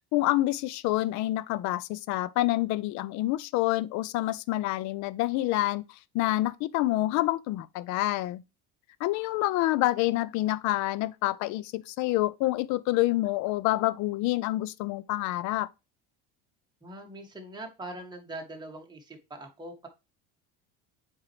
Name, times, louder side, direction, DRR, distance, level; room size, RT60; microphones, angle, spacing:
voice 1, 0.1-8.4 9.0-15.7, left 17 dB, 60° left, 0.6 m, -27 dB
voice 2, 16.8-19.9, right 1 dB, 15° right, 2.0 m, -42 dB
7.5 x 4.6 x 3.2 m
supercardioid pair, 115°, 32 cm